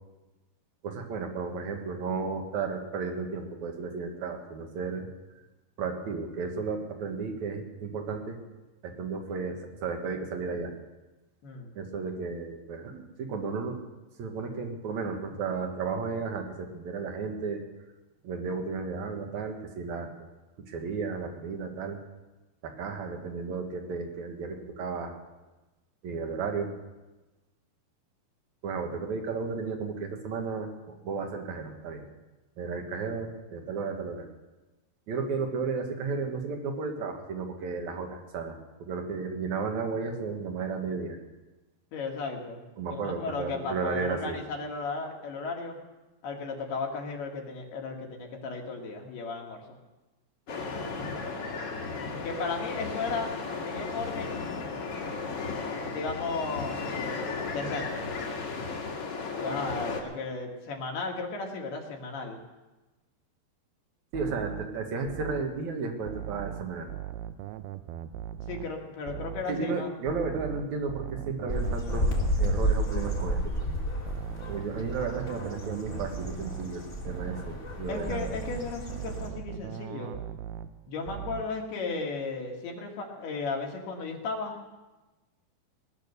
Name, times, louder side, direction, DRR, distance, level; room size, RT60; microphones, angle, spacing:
voice 1, 0.8-5.1 5.8-8.4 8.8-10.7 11.7-13.8 14.2-17.6 18.2-20.1 20.7-22.0 22.6-25.1 26.0-26.7 28.6-32.0 32.6-34.3 35.1-41.2 42.8-44.4 50.8-50.9 64.1-66.9 69.5-73.8 74.5-78.3, right 4 dB, 55° right, 4 dB, 2.4 m, -33 dB
voice 2, 11.4-11.7 41.9-42.6 42.9-45.8 46.2-49.6 52.2-53.3 53.7-54.6 55.9-56.8 57.5-58.1 59.1-62.4 68.5-69.9 77.9-80.2 80.9-84.6, left 4 dB, 75° left, 0 dB, 3.8 m, -35 dB
sound 1, 50.5-60.0, left 4 dB, 45° left, 2.1 m, -35 dB
sound 2, 64.1-65.6 66.1-68.8 69.1-69.6 70.1-73.6 74.1-76.8 77.1-77.6 78.1-80.8 81.1-81.6, right 11 dB, 80° right, 2.4 m, -39 dB
sound 3, 71.5-79.3, equal, 25° left, 1.7 m, -31 dB
19.5 x 10.0 x 6.8 m, 1.1 s
omnidirectional pair, 4.7 m